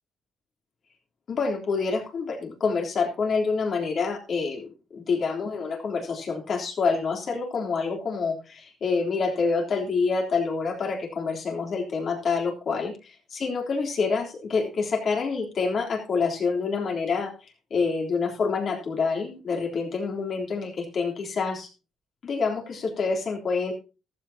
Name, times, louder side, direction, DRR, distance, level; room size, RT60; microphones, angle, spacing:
voice 1, 1.3-17.3 17.7-21.7 22.2-23.7, left 4 dB, 55° left, 1 dB, 3.6 m, -27 dB
14.5 x 12.5 x 2.9 m, 0.31 s
cardioid pair, 90°, 0 cm